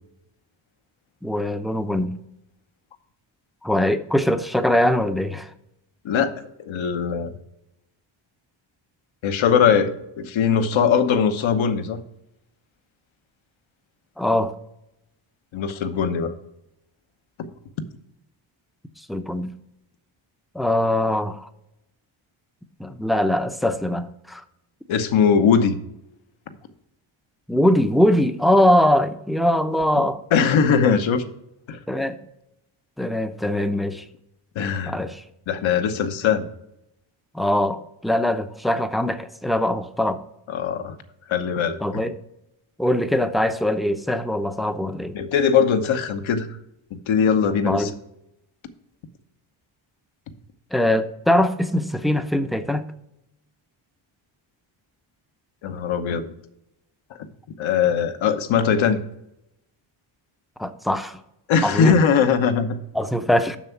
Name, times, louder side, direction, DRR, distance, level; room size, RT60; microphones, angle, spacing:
voice 1, 1.2-2.2 3.6-5.5 14.2-14.5 19.1-19.5 20.5-21.5 22.8-24.4 27.5-30.2 31.9-32.2 33.0-34.0 34.9-35.2 37.3-40.2 41.8-42.1 42.8-45.2 47.7-47.9 50.7-52.9 60.6-61.2 61.6-62.0 62.9-63.6, left 1 dB, ahead, 10 dB, 0.5 m, -22 dB
voice 2, 6.6-7.3 9.2-12.0 15.5-16.3 24.9-25.8 30.3-31.2 31.7-31.8 34.5-35.0 35.5-36.5 40.5-41.0 41.3-42.0 45.1-46.5 47.1-47.9 55.6-56.3 57.6-59.0 61.5-62.8, left 6 dB, 70° left, 10 dB, 1.0 m, -20 dB
7.3 x 6.2 x 5.7 m, 0.84 s
cardioid pair, 100°, 50 cm